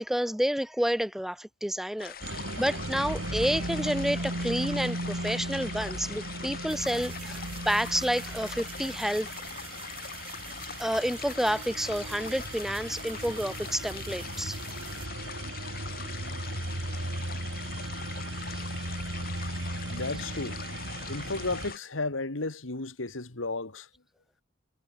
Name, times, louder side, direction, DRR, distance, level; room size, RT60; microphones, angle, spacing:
voice 1, 0.0-9.3 10.8-14.6 18.5-18.6, equal, ahead, 0.7 m, -29 dB
sound 1, 2.0-21.8, left 8 dB, 50° left, 2.2 m, -42 dB
sound 2, 2.2-21.7, right 2 dB, 75° right, 2.5 m, -37 dB
sound 3, 6.7-15.1, right 8 dB, 30° right, 7.4 m, -49 dB
voice 2, 19.9-20.6 21.1-23.9, left 3 dB, 90° left, 2.2 m, -33 dB
head